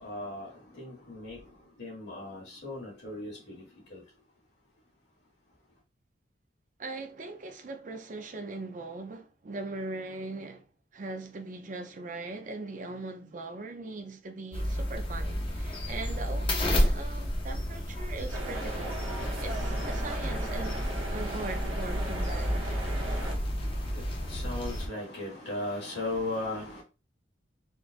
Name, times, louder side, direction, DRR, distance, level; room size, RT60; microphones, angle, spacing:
voice 1, 0.0-4.0 22.6-26.8, left 2 dB, 55° left, 1.7 m, -38 dB
voice 2, 6.8-10.7 10.9-20.8 21.1-22.7, right 2 dB, 40° right, 0.5 m, -40 dB
sound 1, 14.5-24.9, equal, 25° left, 0.6 m, -31 dB
sound 2, 18.3-23.3, right 1 dB, 75° right, 0.8 m, -38 dB
3.8 x 2.4 x 2.5 m
head